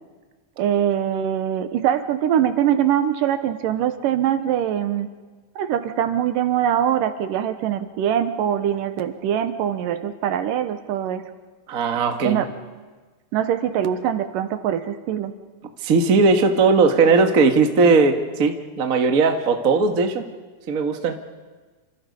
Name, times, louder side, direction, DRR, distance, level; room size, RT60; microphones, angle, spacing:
voice 1, 0.6-5.1 5.6-11.3 12.2-12.5 13.3-15.3, right 10 dB, 75° right, 10 dB, 2.6 m, -23 dB
voice 2, 11.7-12.4 15.8-20.2 20.7-21.2, right 4 dB, 40° right, 5 dB, 1.2 m, -18 dB
28.5 x 26.5 x 5.4 m, 1.4 s
omnidirectional pair, 4.0 m